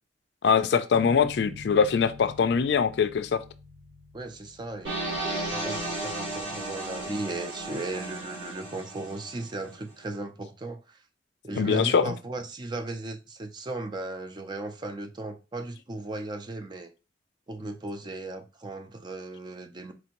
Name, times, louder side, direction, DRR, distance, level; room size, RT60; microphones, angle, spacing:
voice 1, 0.4-3.4 11.5-12.1, left 6 dB, 70° left, 0.4 m, -23 dB
sound 1, 0.9-6.5, left 4 dB, 15° left, 0.7 m, -46 dB
voice 2, 4.1-11.0 11.4-16.9 17.5-19.9, right 2 dB, 25° right, 0.4 m, -36 dB
sound 2, 4.8-9.8, right 2 dB, 85° right, 2.3 m, -34 dB
4.3 x 2.6 x 2.9 m
head